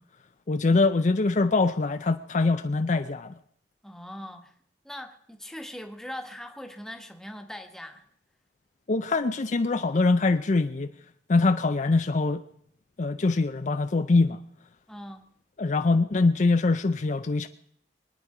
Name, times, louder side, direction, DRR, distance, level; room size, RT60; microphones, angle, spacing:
voice 1, 0.5-3.3 8.9-10.9 11.3-12.4 13.0-14.4 15.6-17.5, left 3 dB, 45° left, 0.5 m, -23 dB
voice 2, 3.8-4.5 4.8-8.0 14.9-15.2, left 1 dB, 5° left, 1.3 m, -40 dB
24.0 x 9.7 x 4.9 m
head